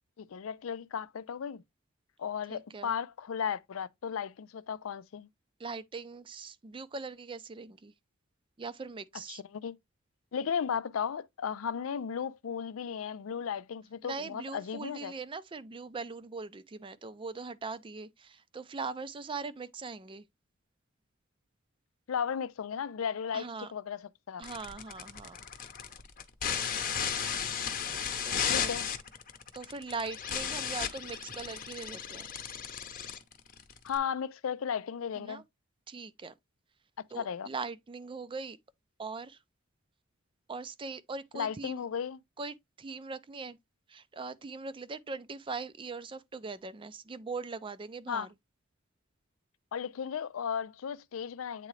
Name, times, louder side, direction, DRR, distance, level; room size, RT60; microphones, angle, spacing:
voice 1, 0.2-1.6 2.2-5.3 9.3-9.8 10.3-15.1 22.1-24.4 28.5-28.9 33.8-35.4 37.2-37.5 41.3-42.2 48.1-48.3 49.7-51.7, left 7 dB, 85° left, 0.4 m, -35 dB
voice 2, 2.5-2.9 5.6-7.9 8.6-9.4 14.0-20.2 23.3-23.7 24.4-25.4 28.2-28.7 29.5-32.3 35.2-35.4 35.9-36.3 37.1-38.6 39.0-39.4 40.5-41.8 42.4-43.6 43.9-48.3, right 4 dB, 25° right, 0.4 m, -41 dB
sound 1, 24.4-34.0, left 7 dB, 45° left, 0.8 m, -35 dB
8.4 x 3.7 x 3.2 m
head